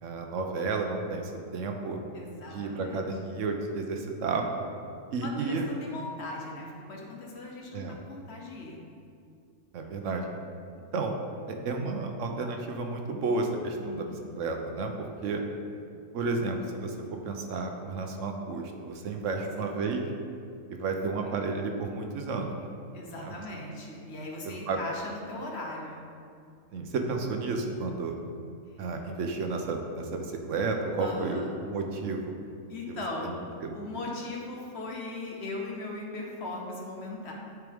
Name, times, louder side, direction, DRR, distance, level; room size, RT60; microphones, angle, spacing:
voice 1, 0.0-2.0 2.5-4.4 5.1-5.6 7.7-8.0 9.7-10.3 10.9-11.2 11.5-14.1 14.3-15.4 16.1-16.9 17.2-20.0 20.7-22.6 23.2-23.3 24.4-24.8 26.7-28.1 28.8-32.3 33.2-33.3 33.6-33.7, right 3 dB, 75° right, 3 dB, 1.1 m, -32 dB
voice 2, 2.1-3.0 5.2-8.8 13.8-14.3 19.6-19.7 21.2-21.3 22.9-26.0 28.7-28.9 31.0-31.5 32.7-33.3 33.7-37.3, left 2 dB, 60° left, -1 dB, 1.2 m, -39 dB
9.3 x 4.7 x 3.5 m, 2.4 s
omnidirectional pair, 1.3 m